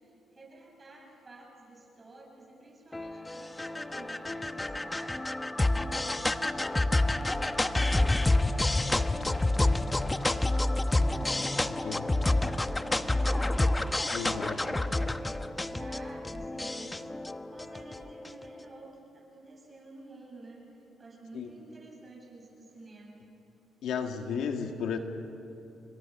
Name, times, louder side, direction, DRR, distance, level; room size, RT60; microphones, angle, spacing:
voice 1, 0.0-5.3 5.7-10.4 10.8-20.6 21.0-23.2, right 2 dB, 30° right, -1 dB, 8.0 m, -51 dB
sound 1, 2.9-18.5, left 2 dB, 15° left, 0.9 m, -28 dB
voice 2, 11.7-12.1 14.1-14.6 21.3-21.5 23.8-25.0, left 6 dB, 75° left, 5 dB, 2.0 m, -34 dB
29.0 x 23.5 x 6.0 m, 2.9 s
supercardioid pair, 70°, 0 cm